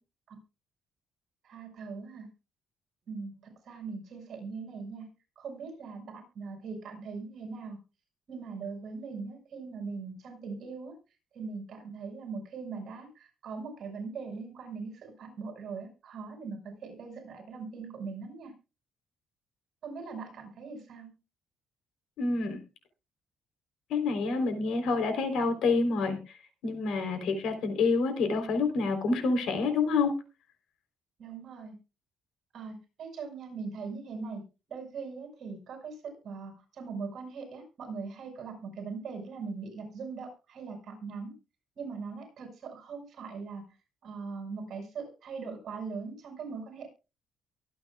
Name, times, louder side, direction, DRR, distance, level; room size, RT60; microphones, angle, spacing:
voice 1, 1.4-2.3 3.1-7.8 8.3-11.0 11.3-18.5 19.8-21.1 31.2-31.7 32.5-41.3 41.8-43.6 44.0-46.9, right 4 dB, 50° right, 2 dB, 6.2 m, -41 dB
voice 2, 22.2-22.6 23.9-26.2 26.6-30.1, left 4 dB, 70° left, 7 dB, 3.9 m, -27 dB
23.5 x 9.0 x 2.4 m, 0.30 s
cardioid pair, 160°, 0 cm